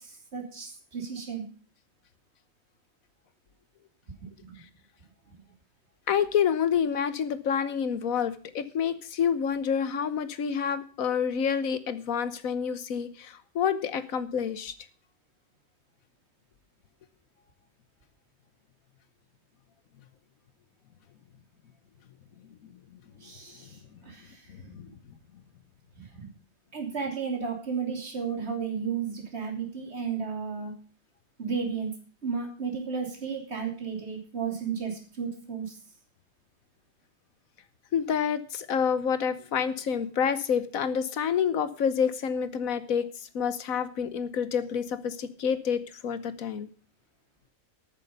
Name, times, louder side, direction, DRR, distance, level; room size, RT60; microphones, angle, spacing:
voice 1, 0.0-1.5 4.2-4.3 5.3-5.4 23.2-24.5 26.0-26.3 26.7-30.7 31.4-31.9 32.2-35.8, right 6 dB, 50° right, 1 dB, 3.3 m, -33 dB
voice 2, 6.1-14.7 24.7-24.9 37.9-43.1 43.3-46.7, left 7 dB, 90° left, 13 dB, 1.5 m, -28 dB
12.5 x 9.4 x 5.4 m, 0.39 s
omnidirectional pair, 1.4 m